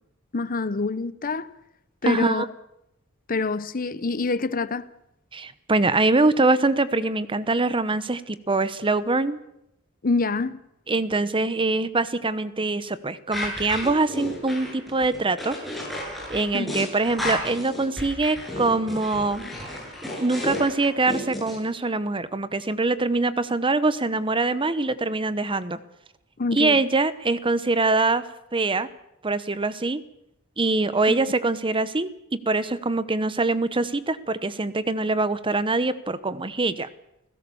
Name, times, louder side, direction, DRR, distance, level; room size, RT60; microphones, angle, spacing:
voice 1, 0.3-1.5 2.0-2.5 3.3-4.9 10.0-10.6 16.5-16.9 26.4-26.8 31.1-31.2, left 3 dB, 40° left, 0.8 m, -26 dB
voice 2, 2.0-2.5 5.3-9.4 10.9-15.6 16.3-19.4 20.2-25.8 26.5-28.2 28.5-28.9 29.2-30.0 30.6-36.9, right 3 dB, 25° right, 1.0 m, -24 dB
sound 1, 13.3-21.6, left 1 dB, ahead, 7.3 m, -32 dB
29.5 x 16.5 x 7.1 m
head